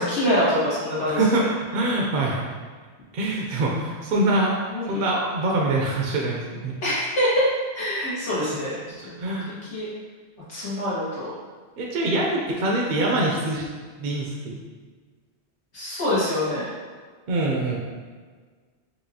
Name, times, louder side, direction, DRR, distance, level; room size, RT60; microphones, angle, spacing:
voice 1, 0.0-1.2 4.7-5.2 6.8-7.5 7.7-9.1 9.7-9.9 10.5-11.3 15.7-16.6, equal, 80° left, -10 dB, 1.8 m, -25 dB
voice 2, 1.1-2.4 3.1-6.7 9.2-9.5 11.8-13.7 14.0-14.6 17.3-17.8, right 2 dB, 60° right, -2 dB, 0.6 m, -24 dB
4.6 x 2.7 x 2.7 m, 1.5 s
omnidirectional pair, 1.1 m